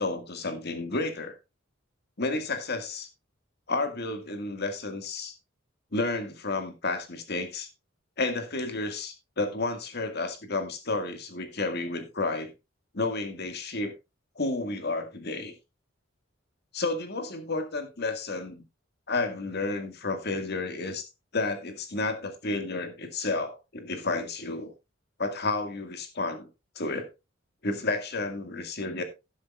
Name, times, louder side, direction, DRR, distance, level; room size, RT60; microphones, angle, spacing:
voice 1, 0.0-1.3 2.2-3.1 3.7-5.3 5.9-7.7 8.2-12.5 12.9-13.9 14.4-15.5 16.7-18.6 19.1-21.0 21.3-24.7 25.2-26.5 26.8-27.1 27.6-29.0, left 3 dB, 55° left, 2.0 m, -31 dB
12.0 x 11.5 x 2.4 m
head